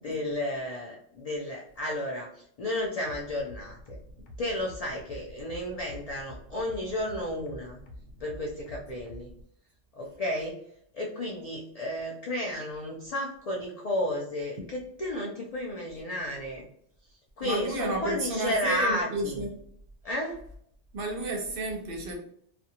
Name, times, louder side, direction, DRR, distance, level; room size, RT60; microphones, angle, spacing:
voice 1, 0.0-4.0 4.4-7.8 8.2-9.3 9.9-10.6 10.9-16.7 17.4-19.4 20.0-20.4, left 1 dB, 70° left, -1 dB, 0.3 m, -32 dB
sound 1, 3.1-9.4, equal, 85° left, 0.9 m, -47 dB
voice 2, 17.4-19.5 20.9-22.2, right 2 dB, 60° right, 2 dB, 0.7 m, -31 dB
2.5 x 2.1 x 2.8 m, 0.67 s
omnidirectional pair, 1.2 m